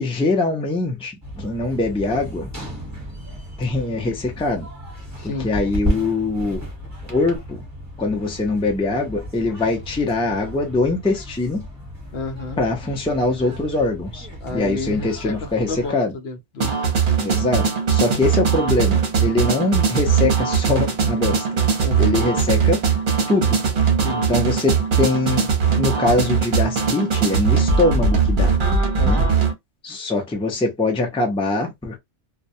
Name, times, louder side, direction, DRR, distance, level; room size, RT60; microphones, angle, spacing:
voice 1, 0.0-2.5 3.6-4.7 5.2-6.6 7.1-7.6 8.0-11.7 12.6-16.1 17.2-21.6 22.0-22.9 23.3-23.6 24.3-28.6 29.0-29.2 29.8-32.0, left 3 dB, 5° left, 0.4 m, -23 dB
sound 1, 1.2-15.9, equal, 15° right, 1.0 m, -34 dB
voice 2, 5.2-5.5 12.1-12.6 14.4-17.1 21.8-22.2 24.0-24.4 28.9-29.4, left 3 dB, 65° left, 0.8 m, -31 dB
sound 2, 16.6-29.5, right 6 dB, 50° right, 0.8 m, -20 dB
2.2 x 2.1 x 2.6 m
omnidirectional pair, 1.2 m